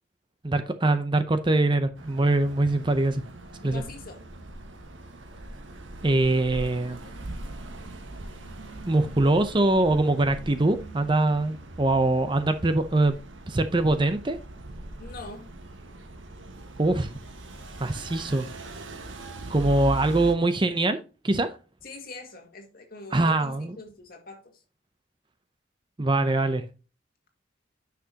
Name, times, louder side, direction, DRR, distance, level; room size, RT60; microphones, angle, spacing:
voice 1, 0.4-3.2 3.6-3.8 6.0-7.0 8.9-13.2 13.5-14.4 16.8-17.1 17.8-18.5 19.5-21.0 21.2-21.5 23.1-23.7 26.0-26.6, right 2 dB, 25° right, 0.6 m, -23 dB
sound 1, 2.0-20.3, right 2 dB, 80° right, 1.3 m, -41 dB
voice 2, 3.6-4.2 15.0-15.5 21.8-24.6, left 3 dB, 50° left, 2.0 m, -43 dB
9.8 x 5.9 x 2.8 m
head